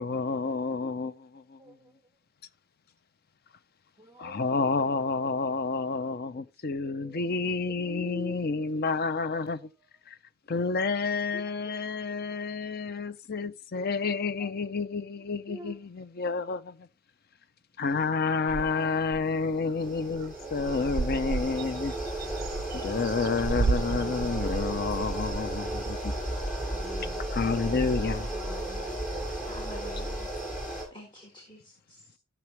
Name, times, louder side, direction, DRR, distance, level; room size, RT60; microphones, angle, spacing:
voice 1, 0.0-1.8 4.2-9.7 10.1-10.2 10.5-16.9 17.8-22.0 22.7-26.1 27.3-28.3, left 4 dB, 45° left, 0.6 m, -30 dB
voice 2, 4.0-4.4 6.9-7.2 7.8-8.3 13.8-14.0 14.4-14.5 15.5-15.8 18.6-19.0 20.4-20.7 26.6-27.2 28.4-29.2, equal, 10° right, 0.7 m, -44 dB
sound 1, 18.5-19.2 19.7-19.8 20.0-20.3 20.6-25.6, right 4 dB, 45° right, 0.4 m, -33 dB
sound 2, 19.2-30.8, right 1 dB, 5° left, 6.7 m, -34 dB
voice 3, 29.5-30.3 30.9-32.2, left 1 dB, 20° left, 1.7 m, -48 dB
14.0 x 6.0 x 3.0 m
head